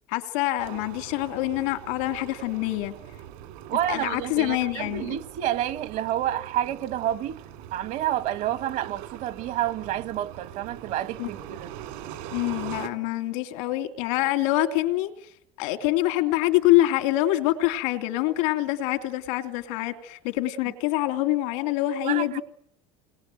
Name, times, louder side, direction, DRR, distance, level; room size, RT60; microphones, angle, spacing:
voice 1, 0.1-2.9 3.9-5.2 11.2-11.3 12.3-15.1 15.6-22.4, left 16 dB, 80° left, 3.0 m, -25 dB
sound 1, 0.6-12.9, right 11 dB, 70° right, 3.0 m, -42 dB
voice 2, 3.7-7.4 7.7-11.7 22.0-22.4, right 12 dB, 55° right, 1.6 m, -29 dB
29.0 x 21.0 x 9.2 m
supercardioid pair, 135°, 16 cm